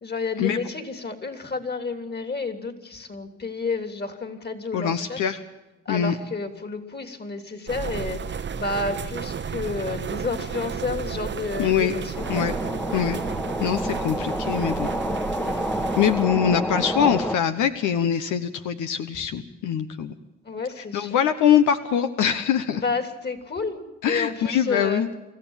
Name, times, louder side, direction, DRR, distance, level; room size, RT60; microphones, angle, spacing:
voice 1, 0.0-5.2 5.8-12.5 20.4-21.2 22.8-25.0, left 4 dB, 35° left, 7 dB, 3.3 m, -31 dB
voice 2, 4.7-5.4 5.9-6.2 11.6-11.9 12.3-12.5 12.9-13.2 13.6-14.9 16.0-20.1 20.8-22.8 24.0-25.1, left 9 dB, 80° left, 9 dB, 1.1 m, -23 dB
sound 1, 7.7-16.3, right 7 dB, 40° right, 0.9 m, -33 dB
sound 2, 12.1-17.4, equal, 5° left, 1.2 m, -28 dB
25.5 x 14.5 x 7.3 m, 1.1 s
cardioid pair, 90°, 30 cm